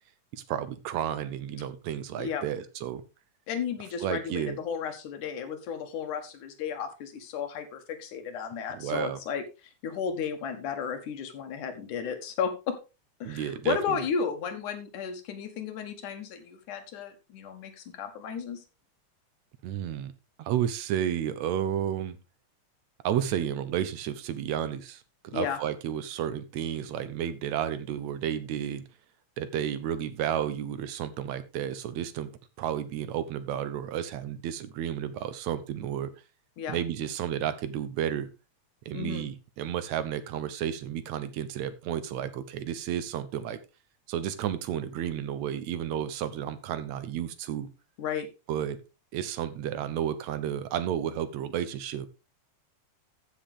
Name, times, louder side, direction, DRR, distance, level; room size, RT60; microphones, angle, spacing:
voice 1, 0.3-3.0 4.0-4.6 8.7-9.2 13.2-14.0 19.6-20.1 20.4-22.2 23.0-28.8 29.4-32.3 32.6-36.1 36.7-38.3 38.9-43.6 44.1-47.7 48.5-48.8 49.1-52.1, right 10 dB, 75° right, 13 dB, 2.0 m, -32 dB
voice 2, 3.5-9.4 9.8-12.8 13.2-18.6 25.3-25.6 36.6-36.8 38.9-39.3 48.0-48.3, left 7 dB, 90° left, 7 dB, 3.0 m, -33 dB
14.0 x 6.4 x 3.6 m, 0.29 s
omnidirectional pair, 3.4 m